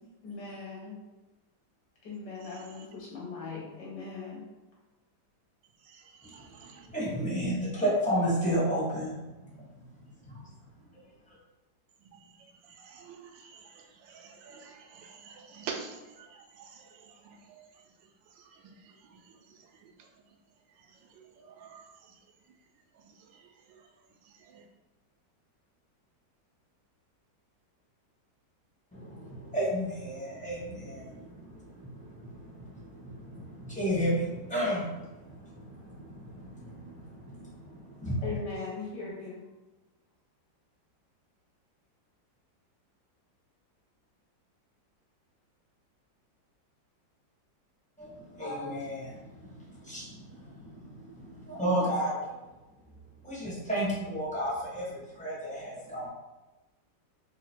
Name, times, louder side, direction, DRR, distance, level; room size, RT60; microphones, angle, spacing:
voice 1, 0.2-1.0 2.0-4.4 38.2-39.3, left 4 dB, 70° left, -5 dB, 1.8 m, -39 dB
voice 2, 2.5-2.8 6.7-6.8 12.8-13.1 13.4-13.6 14.1-15.9 17.3-17.6 18.6-18.7 21.6-21.8, right 6 dB, 90° right, 3 dB, 1.3 m, -44 dB
voice 3, 6.6-9.6 10.2-10.5 11.3-11.4 28.9-38.4 48.0-52.4 53.2-56.1, equal, 5° left, -8 dB, 0.9 m, -33 dB
3.8 x 2.0 x 4.4 m, 1.1 s
omnidirectional pair, 2.0 m